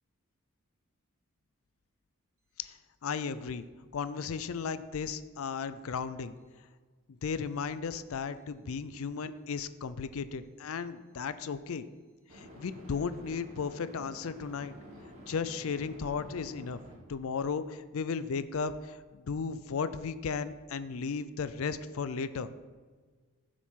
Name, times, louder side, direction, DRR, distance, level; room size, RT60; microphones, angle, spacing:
voice 1, 2.6-3.7 3.9-6.3 7.1-11.9 12.3-14.7 15.3-16.8 17.1-22.5, left 5 dB, 75° left, 13 dB, 0.4 m, -35 dB
sound 1, 7.4-7.6 12.3-16.9, equal, 80° right, 2.5 m, -50 dB
13.5 x 7.5 x 3.7 m, 1.5 s
head